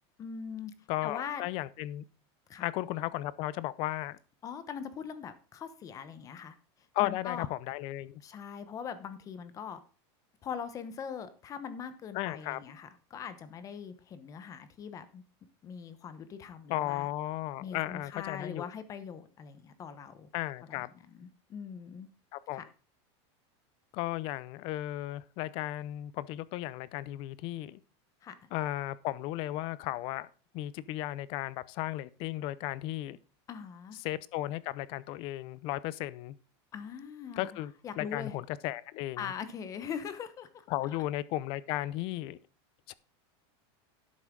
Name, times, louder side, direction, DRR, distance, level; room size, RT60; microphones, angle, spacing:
voice 1, 0.2-0.7 1.0-1.4 2.5-2.7 4.4-6.5 7.0-7.5 8.2-9.8 10.4-15.2 15.6-17.1 17.6-20.3 20.7-20.8 21.1-22.1 22.5-22.6 28.2-28.5 33.5-34.0 36.7-38.3 39.2-41.0, left 7 dB, 25° left, 1.0 m, -41 dB
voice 2, 0.9-2.0 2.6-4.2 6.9-8.2 12.1-12.6 16.7-18.7 20.3-20.9 22.3-22.7 23.9-27.8 28.5-30.3 30.5-33.2 34.0-36.4 37.4-39.3 40.7-42.4 42.9-43.0, left 15 dB, 40° left, 0.6 m, -35 dB
11.0 x 8.2 x 3.8 m
supercardioid pair, 165°, 15 cm